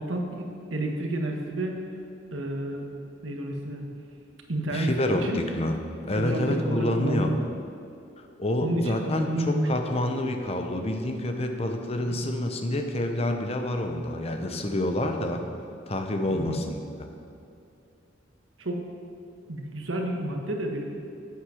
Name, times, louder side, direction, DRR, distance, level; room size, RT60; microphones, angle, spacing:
voice 1, 0.0-1.8 2.3-2.9 3.2-3.8 4.5-4.9 5.2-5.4 6.1-7.4 8.6-9.7 12.1-12.2 16.3-16.6 18.6-18.8 19.5-20.8, right 1 dB, 90° right, 1 dB, 1.4 m, -30 dB
voice 2, 4.7-5.8 6.0-7.3 8.2-15.4 15.9-16.8, left 1 dB, 30° left, 5 dB, 0.8 m, -28 dB
8.3 x 8.1 x 5.8 m, 2.6 s
head